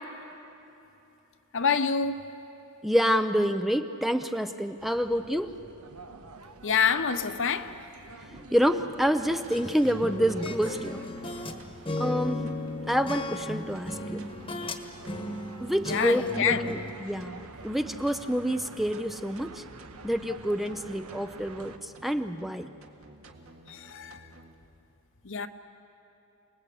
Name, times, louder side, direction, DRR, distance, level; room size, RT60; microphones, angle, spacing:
voice 1, 1.5-2.3 6.6-7.7 15.9-16.7 23.7-24.2 25.2-25.5, left 6 dB, 60° left, 10 dB, 1.0 m, -27 dB
voice 2, 2.8-5.6 8.5-11.0 12.0-12.5 12.9-14.2 15.6-17.4 17.6-19.6 20.0-22.7, equal, ahead, 8 dB, 0.6 m, -27 dB
sound 1, 4.8-21.8, right 3 dB, 90° right, 1.3 m, -48 dB
sound 2, 8.2-24.5, right 1 dB, 65° right, 2.0 m, -52 dB
sound 3, 9.5-11.6 11.9-14.8 15.1-16.9, left 2 dB, 25° left, 1.3 m, -35 dB
28.0 x 20.0 x 8.5 m, 3.0 s
head